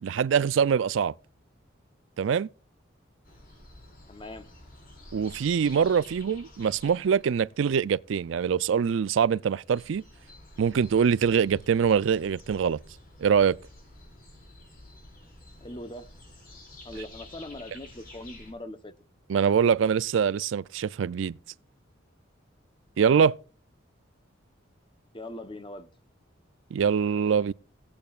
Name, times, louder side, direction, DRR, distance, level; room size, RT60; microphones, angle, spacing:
voice 1, 0.0-1.1 2.2-2.5 5.1-10.0 10.6-12.8 13.2-13.6 19.3-21.4 23.0-23.3 26.7-27.5, right 7 dB, 70° right, 0.4 m, -24 dB
sound 1, 3.2-8.7 9.2-9.3 9.5-18.5, left 1 dB, 45° left, 4.8 m, -50 dB
voice 2, 4.1-4.5 15.6-16.1 16.8-18.9 25.1-25.9, left 1 dB, 25° left, 0.9 m, -41 dB
17.0 x 8.6 x 2.4 m
head